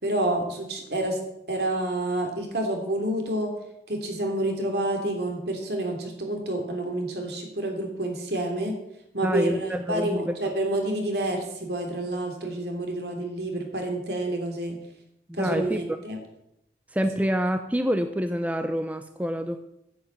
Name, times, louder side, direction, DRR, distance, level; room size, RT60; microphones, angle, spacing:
voice 1, 0.0-1.2 1.5-3.5 3.9-8.7 9.1-14.8 15.3-16.2, right 1 dB, 60° right, 3 dB, 3.1 m, -28 dB
voice 2, 9.2-10.3 15.3-15.8 16.9-19.6, equal, 10° right, 8 dB, 0.6 m, -27 dB
10.0 x 8.1 x 8.8 m, 0.81 s
head